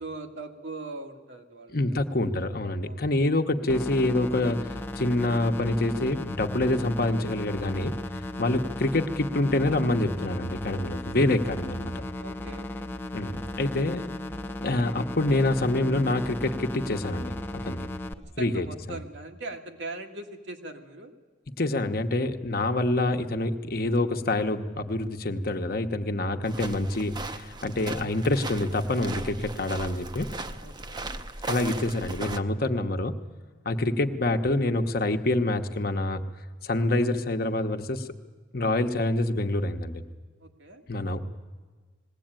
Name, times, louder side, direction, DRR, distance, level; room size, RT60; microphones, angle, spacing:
voice 1, 0.0-2.1 2.8-3.0 8.5-8.6 12.2-12.9 18.4-21.1 30.6-31.1 40.4-40.8, right 2 dB, 75° right, 4 dB, 1.9 m, -40 dB
voice 2, 1.7-8.0 8.4-12.0 13.1-14.0 14.6-17.8 18.4-19.0 21.6-30.3 31.5-33.2 33.6-36.2 36.6-38.1 38.5-40.0 40.9-41.2, left 2 dB, 55° left, 6 dB, 1.1 m, -26 dB
sound 1, 3.7-18.1, left 1 dB, 10° left, 0.8 m, -36 dB
sound 2, 26.4-32.4, right 2 dB, 25° right, 0.8 m, -37 dB
20.5 x 17.0 x 9.0 m, 1.4 s
head